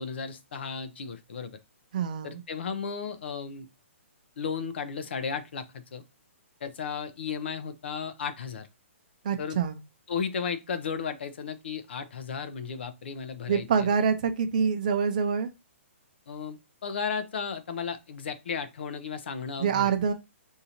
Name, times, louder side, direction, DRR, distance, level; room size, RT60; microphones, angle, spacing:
voice 1, 0.0-1.6 2.2-3.7 4.4-6.0 6.6-8.7 9.4-9.6 10.1-13.9 16.3-19.9, left 6 dB, 55° left, 0.6 m, -34 dB
voice 2, 1.9-2.4 9.2-9.8 13.5-15.5 19.6-20.1, right 6 dB, 35° right, 0.5 m, -26 dB
4.8 x 2.7 x 2.8 m
hypercardioid pair, 175°, 7 cm